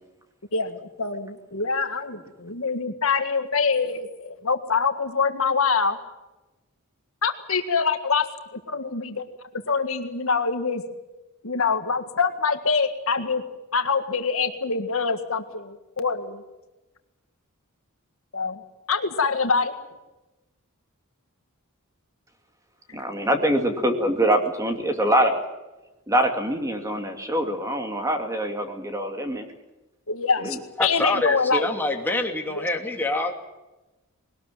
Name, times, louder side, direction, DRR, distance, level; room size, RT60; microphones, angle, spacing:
voice 1, 0.5-6.0 7.2-8.3 8.5-9.2 9.7-10.8 11.4-13.4 13.7-16.4 18.3-18.6 18.9-19.7 30.1-31.6 32.6-32.7, left 5 dB, 65° left, 7 dB, 1.8 m, -25 dB
voice 2, 22.9-25.4 26.1-29.5 30.4-30.6, right 1 dB, 15° right, 5 dB, 2.5 m, -24 dB
voice 3, 30.8-33.4, left 2 dB, 10° left, 2 dB, 2.7 m, -25 dB
21.0 x 19.0 x 9.2 m, 1.0 s
head